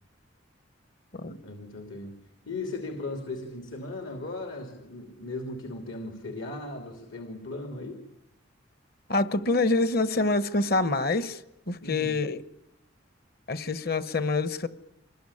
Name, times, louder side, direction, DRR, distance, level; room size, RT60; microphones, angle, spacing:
voice 1, 1.4-2.2 2.5-8.0 11.8-12.2, left 2 dB, 75° left, 2.9 m, -37 dB
voice 2, 9.1-11.4 11.7-12.4 13.5-14.7, left 2 dB, 50° left, 1.2 m, -26 dB
25.0 x 21.0 x 9.9 m
head